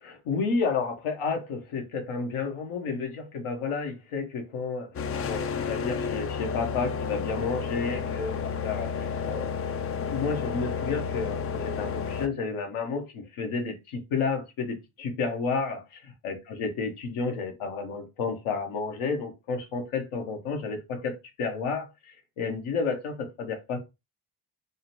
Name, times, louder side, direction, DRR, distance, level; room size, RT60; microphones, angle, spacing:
voice 1, 0.0-9.6 10.1-23.8, left 4 dB, 75° left, 1.0 m, -31 dB
sound 1, 4.9-12.3, left 6 dB, 30° left, 0.4 m, -31 dB
3.6 x 2.2 x 2.7 m
supercardioid pair, 45°, 50 cm